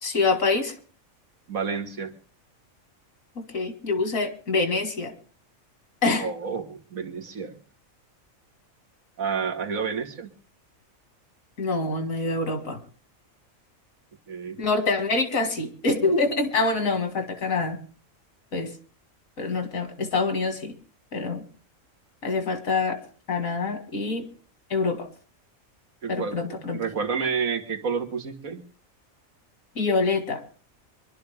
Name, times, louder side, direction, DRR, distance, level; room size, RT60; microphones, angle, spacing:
voice 1, 0.0-0.7 3.4-5.1 6.0-6.3 11.6-12.8 14.6-17.8 18.5-18.7 19.4-20.7 21.1-21.4 22.2-23.0 23.3-24.3 24.7-25.1 26.1-26.8 29.8-30.4, left 3 dB, 75° left, 7 dB, 2.4 m, -25 dB
voice 2, 1.5-2.1 6.2-7.6 9.2-10.3 14.3-14.6 26.0-28.6, right 5 dB, 80° right, 5 dB, 2.1 m, -30 dB
24.0 x 12.0 x 3.5 m, 0.40 s
omnidirectional pair, 1.4 m